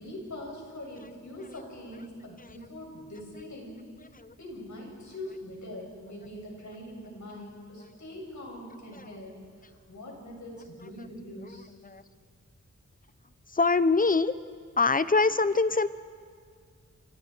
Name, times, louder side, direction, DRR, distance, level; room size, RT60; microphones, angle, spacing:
voice 1, 0.0-3.8 4.4-9.4 9.7-11.7, left 1 dB, 70° left, -1 dB, 7.1 m, -42 dB
voice 2, 13.5-14.3 14.8-15.9, left 3 dB, 25° left, 14 dB, 0.8 m, -24 dB
29.5 x 26.0 x 4.6 m, 2.1 s
wide cardioid pair, 80°, 30 cm